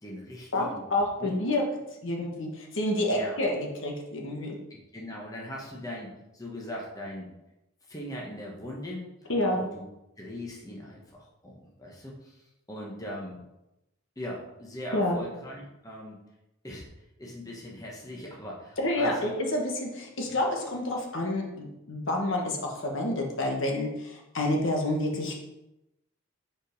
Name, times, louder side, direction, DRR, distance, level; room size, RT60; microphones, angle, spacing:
voice 1, 0.0-0.8 1.2-1.4 3.1-3.4 4.7-7.3 7.9-9.8 10.2-12.4 12.7-13.4 14.2-16.2 16.6-16.9 17.2-19.3, left 1 dB, 15° left, -3 dB, 1.2 m, -40 dB
voice 2, 0.5-1.6 2.0-4.6 9.3-9.6 14.9-15.2 18.8-25.3, left 1 dB, 65° left, 0 dB, 1.3 m, -29 dB
5.5 x 5.1 x 5.1 m, 0.92 s
head